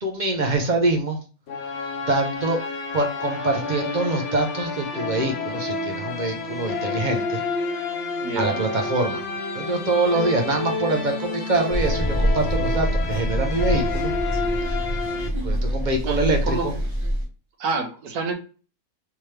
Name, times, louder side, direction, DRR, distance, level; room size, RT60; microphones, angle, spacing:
voice 1, 0.0-1.2 2.1-2.6 2.9-7.4 8.4-9.2 9.5-14.1 15.4-16.7, right 2 dB, 50° right, 2 dB, 0.5 m, -24 dB
sound 1, 1.5-15.3, left 3 dB, 55° left, 0.8 m, -29 dB
voice 2, 8.2-8.6 16.0-16.7 17.6-18.3, right 4 dB, 85° right, 5 dB, 1.2 m, -27 dB
sound 2, 11.7-17.2, equal, 20° right, 1.0 m, -25 dB
3.5 x 2.9 x 3.1 m, 0.36 s
omnidirectional pair, 1.5 m